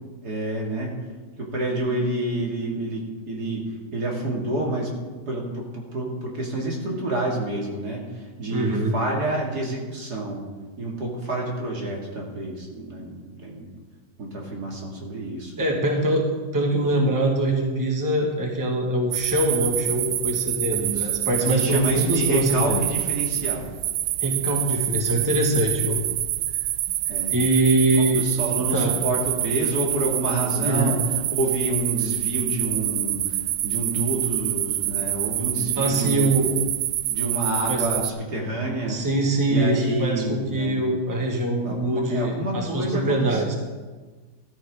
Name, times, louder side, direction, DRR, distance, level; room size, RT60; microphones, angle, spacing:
voice 1, 0.2-1.0 1.4-4.9 5.3-10.4 10.8-13.7 14.2-15.5 20.8-21.1 21.4-23.7 25.9-26.0 27.1-27.4 28.1-31.0 31.3-36.4 37.1-39.0 39.5-40.8 41.6-43.4, right 1 dB, 60° right, -2 dB, 2.9 m, -28 dB
voice 2, 8.5-8.9 15.6-22.8 24.2-26.0 27.3-28.2 28.6-28.9 30.6-30.9 35.8-36.5 37.7-37.8 38.9-43.5, right 1 dB, 10° right, 0 dB, 1.6 m, -23 dB
sound 1, 19.1-38.1, right 14 dB, 85° right, 1.3 m, -27 dB
14.0 x 13.5 x 3.7 m, 1.3 s
omnidirectional pair, 1.9 m